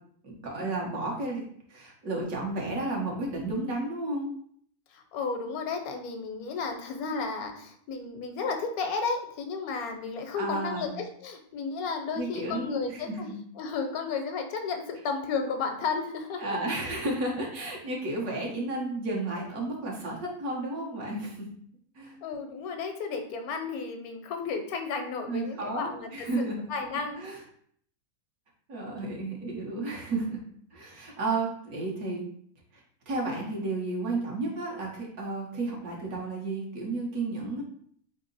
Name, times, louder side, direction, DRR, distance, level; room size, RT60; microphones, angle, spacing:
voice 1, 0.2-1.4 1.7-4.3 10.3-10.9 12.1-13.4 16.4-21.5 21.9-22.1 25.3-26.6 27.2-27.4 28.7-30.4 30.7-32.2 33.1-37.6, right 2 dB, 80° right, -2 dB, 1.5 m, -32 dB
voice 2, 4.9-13.3 13.6-16.6 22.2-26.4 26.7-27.2, left 5 dB, 90° left, 5 dB, 1.1 m, -33 dB
3.5 x 2.8 x 3.9 m, 0.63 s
omnidirectional pair, 1.5 m